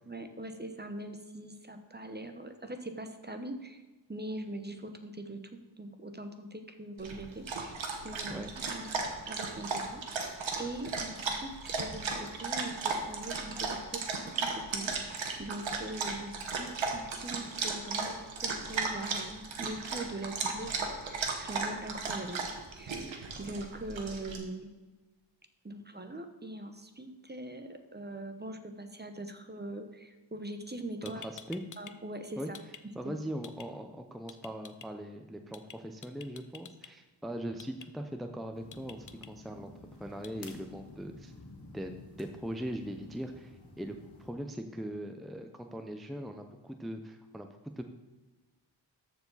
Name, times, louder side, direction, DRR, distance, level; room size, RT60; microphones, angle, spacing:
voice 1, 0.1-3.8 4.1-5.4 5.8-14.1 14.4-20.8 21.1-23.0 23.4-24.7 25.6-31.2 31.8-32.6 33.0-33.1, right 2 dB, 20° right, 6 dB, 1.0 m, -42 dB
Dog, 7.0-24.4, right 4 dB, 80° right, 1.4 m, -35 dB
sound 1, 30.7-30.8 31.1-31.9 32.2-32.8 33.4-33.7 34.3-34.9 35.5-35.8 36.0-36.9 37.6-37.9 38.7-39.3 40.2-40.5, left 7 dB, 45° left, 0.7 m, -48 dB
voice 2, 31.0-31.6 32.4-32.5 32.9-39.7 40.0-41.3 41.7-47.8, equal, ahead, 6 dB, 0.7 m, -40 dB
sound 2, 38.5-44.3, left 2 dB, 60° left, 1.9 m, -52 dB
13.5 x 4.9 x 4.0 m, 1.2 s
cardioid pair, 55°, 46 cm